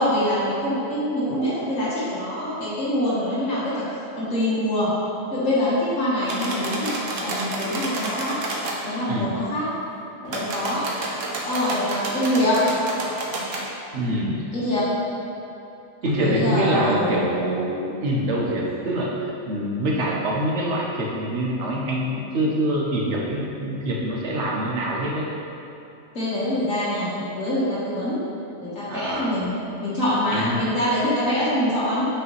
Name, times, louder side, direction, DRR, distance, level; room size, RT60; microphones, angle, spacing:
voice 1, 0.0-3.8 4.2-4.9 5.3-6.9 7.2-8.3 8.8-9.7 10.2-10.8 11.5-12.6 14.5-14.9 16.2-17.2 26.2-27.1 27.4-28.3 28.6-32.1, left 1 dB, 80° left, -9 dB, 2.0 m, -24 dB
sound 1, 6.2-8.8 10.2-13.7, right 2 dB, 80° right, 1.3 m, -30 dB
voice 2, 13.9-14.4 16.0-25.3 28.9-29.4 30.3-30.7, right 1 dB, 65° right, -3 dB, 1.3 m, -25 dB
8.7 x 5.0 x 3.2 m, 3.0 s
omnidirectional pair, 1.3 m